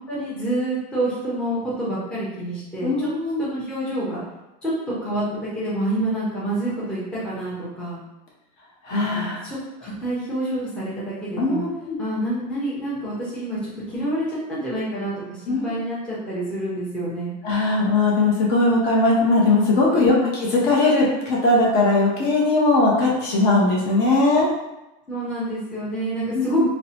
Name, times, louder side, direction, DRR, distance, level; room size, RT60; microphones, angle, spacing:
voice 1, 0.0-3.1 3.4-4.2 4.6-4.7 5.0-8.0 8.9-11.6 12.0-15.1 15.4-17.3 19.9-20.3 25.1-26.7, right 1 dB, 5° left, -9 dB, 0.5 m, -27 dB
voice 2, 2.8-3.4 8.8-9.4 11.4-12.0 15.5-15.7 17.4-24.5 26.3-26.7, left 2 dB, 50° left, -4 dB, 0.6 m, -19 dB
2.7 x 2.0 x 2.7 m, 0.98 s
cardioid pair, 175°, 21 cm